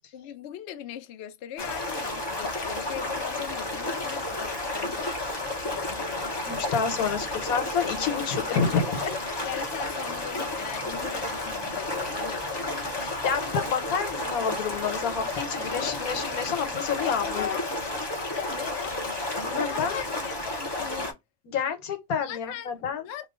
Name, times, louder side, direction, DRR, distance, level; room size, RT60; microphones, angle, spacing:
voice 1, 0.1-6.8 9.4-12.5 17.2-17.6 18.3-19.1 19.5-21.2 22.2-22.7 23.0-23.3, left 10 dB, 65° left, 0.7 m, -40 dB
sound 1, 1.6-21.1, left 2 dB, 25° left, 0.6 m, -31 dB
voice 2, 6.5-9.1 12.5-17.5 18.2-18.3 19.4-20.0 21.4-23.1, left 6 dB, 85° left, 1.3 m, -29 dB
3.0 x 2.2 x 3.6 m
omnidirectional pair, 1.5 m